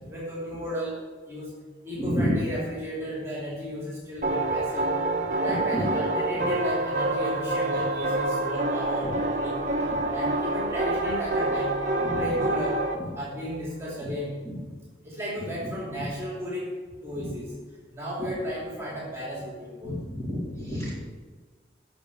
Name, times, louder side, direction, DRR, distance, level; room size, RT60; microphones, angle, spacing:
voice 1, 0.1-1.5 1.8-4.9 5.3-9.6 10.1-11.7 12.1-12.8 13.1-14.3 15.0-16.7 17.0-17.5 17.9-20.0, equal, 15° right, -6 dB, 3.0 m, -34 dB
voice 2, 2.0-2.3 5.7-5.9 12.0-12.2 19.8-21.0, equal, 15° left, -7 dB, 3.7 m, -29 dB
sound 1, 4.2-12.9, right 2 dB, 40° right, 1.2 m, -27 dB
10.0 x 6.3 x 8.4 m, 1.4 s
head